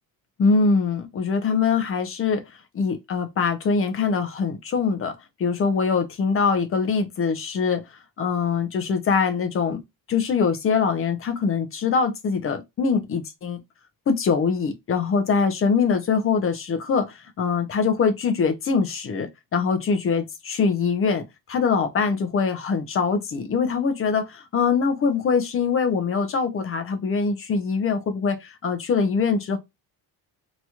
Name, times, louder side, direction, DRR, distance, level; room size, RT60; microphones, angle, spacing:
voice 1, 0.4-2.4 2.7-5.1 5.4-9.8 10.1-13.6 14.1-29.6, left 5 dB, 35° left, 0.7 m, -23 dB
3.0 x 2.9 x 2.3 m
cardioid pair, 155°, 40 cm